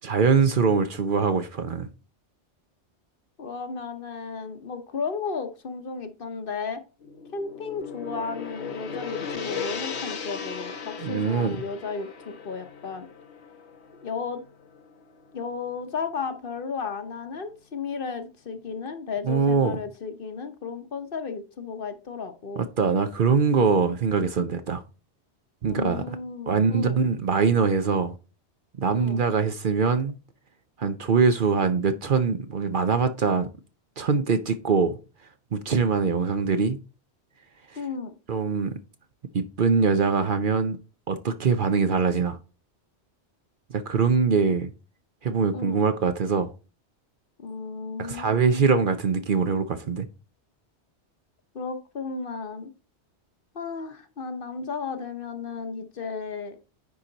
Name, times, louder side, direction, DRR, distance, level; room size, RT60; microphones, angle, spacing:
voice 1, 0.0-1.9 11.0-11.6 19.2-19.8 22.6-24.8 25.6-26.0 26.5-28.1 28.8-30.1 30.8-33.5 34.0-35.0 35.5-36.8 38.3-38.7 39.3-40.8 41.1-42.4 43.7-44.7 45.2-46.5 48.0-50.1, right 5 dB, 50° right, 0.8 m, -23 dB
voice 2, 3.4-6.8 7.3-13.1 14.0-14.4 15.3-22.6 25.7-27.0 28.9-29.2 37.8-38.1 44.1-44.3 45.5-45.8 47.4-48.7 51.5-52.7 53.5-56.6, left 5 dB, 55° left, 1.0 m, -34 dB
Gong, 7.0-15.4, left 6 dB, 75° left, 1.2 m, -37 dB
9.7 x 4.3 x 3.9 m
omnidirectional pair, 1.2 m